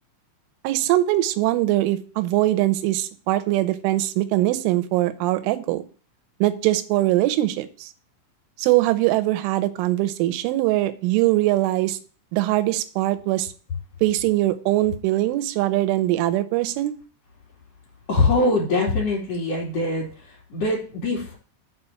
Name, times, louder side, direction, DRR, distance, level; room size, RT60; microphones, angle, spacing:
voice 1, 0.6-5.8 6.4-7.9 8.6-12.0 12.3-13.5 14.0-17.0, right 16 dB, 85° right, 11 dB, 3.2 m, -22 dB
voice 2, 18.1-21.4, left 2 dB, 40° left, -4 dB, 3.1 m, -23 dB
7.0 x 4.9 x 6.8 m, 0.39 s
omnidirectional pair, 5.6 m